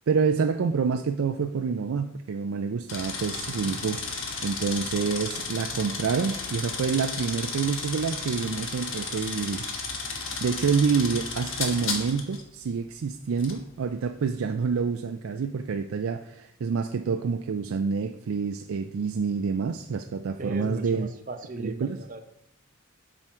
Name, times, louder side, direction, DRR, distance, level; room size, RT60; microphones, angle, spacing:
voice 1, 0.1-9.7 10.1-21.1 21.6-22.0, right 5 dB, 75° right, 6 dB, 0.4 m, -27 dB
sound 1, 2.9-12.4 13.4-13.6, left 4 dB, 70° left, 1.3 m, -33 dB
voice 2, 20.4-22.2, right 2 dB, 40° right, 7 dB, 0.7 m, -36 dB
7.7 x 6.1 x 4.3 m, 0.77 s
head